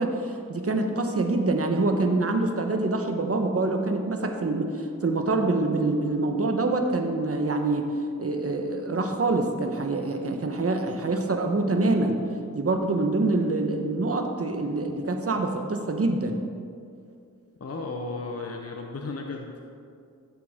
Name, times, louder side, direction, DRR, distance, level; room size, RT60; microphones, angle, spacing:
voice 1, 0.0-7.9 8.2-12.2 12.5-16.4, right 2 dB, 45° right, 4 dB, 1.1 m, -25 dB
voice 2, 17.6-19.6, left 3 dB, 45° left, 1 dB, 1.0 m, -34 dB
13.0 x 7.8 x 3.7 m, 2.4 s
cardioid pair, 55°, 33 cm